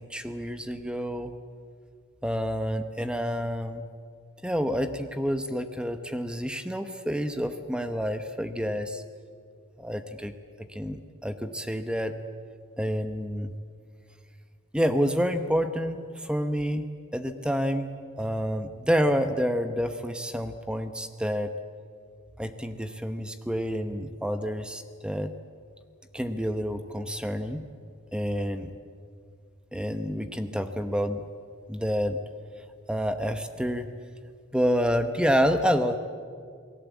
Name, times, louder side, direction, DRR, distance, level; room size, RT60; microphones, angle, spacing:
voice 1, 0.0-1.3 2.2-3.9 4.4-9.0 9.8-10.3 10.7-12.2 12.8-13.5 14.7-16.8 17.1-17.9 18.2-21.5 22.4-25.3 26.1-27.6 28.1-28.7 29.7-31.2 31.7-32.2 32.9-33.9 34.5-36.0, equal, 5° right, 8 dB, 1.0 m, -28 dB
28.5 x 19.5 x 8.4 m, 2.1 s
head